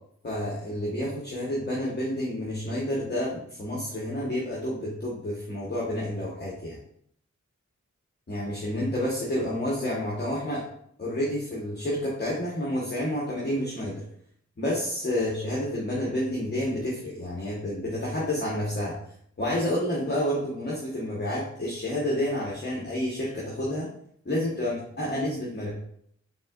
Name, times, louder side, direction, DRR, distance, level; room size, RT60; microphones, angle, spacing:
voice 1, 0.2-6.8 8.3-10.6 11.0-13.9 14.6-19.0 19.4-23.9 24.2-25.7, left 1 dB, 35° left, -5 dB, 1.1 m, -29 dB
4.0 x 3.6 x 2.4 m, 0.66 s
cardioid pair, 50°, 29 cm